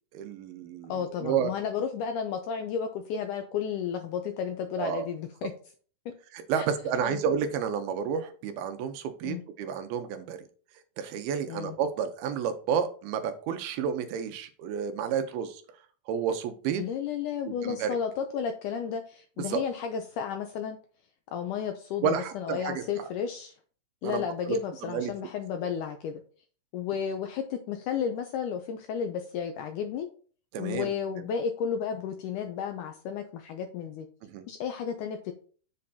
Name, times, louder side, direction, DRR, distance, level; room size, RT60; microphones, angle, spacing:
voice 1, 0.1-1.5 4.8-5.1 6.3-10.4 11.0-15.6 16.1-16.8 17.5-18.0 19.5-19.6 22.0-22.8 24.0-24.6 24.9-25.1 30.5-30.9 34.2-34.5, right 7 dB, 85° right, 8 dB, 2.8 m, -30 dB
voice 2, 0.9-5.5 6.6-6.7 7.0-7.2 9.2-9.4 11.5-11.8 16.8-20.8 21.3-23.5 24.0-26.2 26.7-30.1 30.6-34.1 34.5-35.3, left 7 dB, 80° left, 6 dB, 1.8 m, -32 dB
7.6 x 7.5 x 2.8 m, 0.42 s
omnidirectional pair, 4.3 m